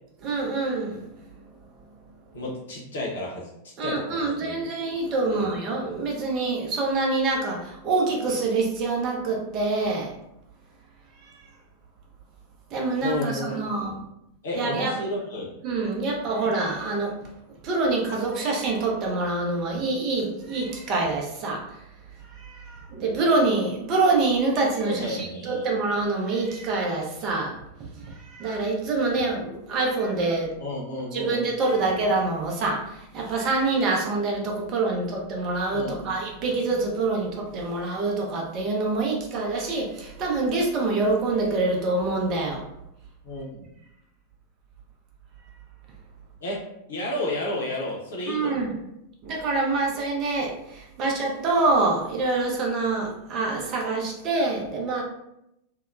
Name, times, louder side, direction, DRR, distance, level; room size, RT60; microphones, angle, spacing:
voice 1, 0.2-1.0 3.8-10.1 11.2-11.4 12.7-13.9 14.5-15.0 15.6-17.2 17.6-21.6 22.3-27.5 28.0-30.6 31.1-42.6 48.3-48.7 49.2-55.0, right 3 dB, 35° right, 0 dB, 0.6 m, -26 dB
voice 2, 2.3-3.5 3.8-4.7 5.2-5.5 13.0-14.0 14.4-15.5 16.0-16.3 19.7-19.9 24.8-25.7 30.6-31.9 35.7-36.1 43.2-43.7 46.4-46.6 46.9-48.7, left 1 dB, 60° left, -3 dB, 0.9 m, -32 dB
2.7 x 2.1 x 2.4 m, 0.83 s
figure-of-eight pair, 90°, 0 cm